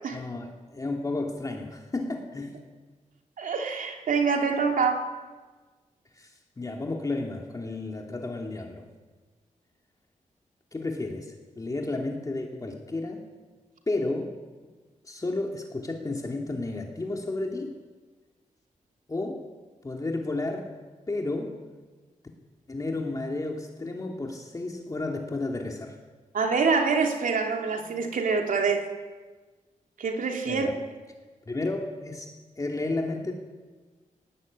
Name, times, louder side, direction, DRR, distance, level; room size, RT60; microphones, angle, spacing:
voice 1, 0.1-2.6 6.1-8.9 10.7-13.2 13.9-14.3 15.0-17.8 19.1-19.4 19.8-20.7 21.1-21.6 22.7-26.0 30.5-30.8 31.5-33.3, left 2 dB, 25° left, 1 dB, 2.6 m, -32 dB
voice 2, 3.4-5.1 26.3-28.9 30.0-30.7, right 5 dB, 85° right, 3 dB, 3.2 m, -25 dB
20.5 x 19.5 x 8.7 m, 1.3 s
wide cardioid pair, 125°, 14 cm